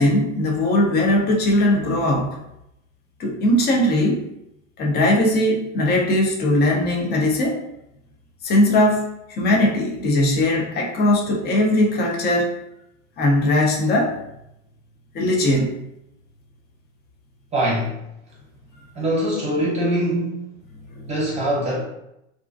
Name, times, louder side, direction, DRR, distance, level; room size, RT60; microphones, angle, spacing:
voice 1, 0.0-2.4 3.2-4.2 4.8-7.6 8.4-9.0 9.3-12.6 13.2-14.1 15.1-15.8 21.0-21.1, left 1 dB, 25° left, -1 dB, 0.6 m, -19 dB
voice 2, 17.5-18.0 18.9-20.4 21.1-21.8, right 1 dB, 20° right, -5 dB, 0.8 m, -22 dB
2.4 x 2.2 x 2.5 m, 0.83 s
hypercardioid pair, 100°, 37 cm